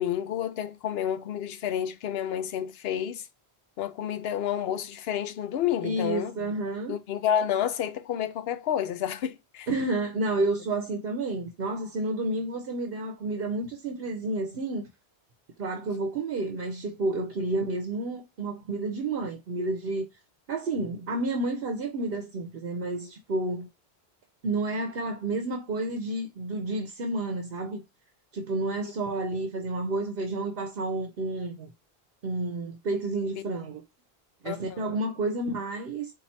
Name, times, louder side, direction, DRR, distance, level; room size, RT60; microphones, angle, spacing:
voice 1, 0.0-3.3 3.8-6.3 6.9-9.7 28.8-28.9 34.4-34.9, left 10 dB, 75° left, 0.8 m, -30 dB
voice 2, 5.8-6.9 9.7-14.8 15.6-20.1 20.5-23.7 24.4-27.8 28.3-31.7 32.2-33.8 34.4-36.1, right 2 dB, 65° right, 1.0 m, -30 dB
4.3 x 2.7 x 4.2 m
omnidirectional pair, 1.1 m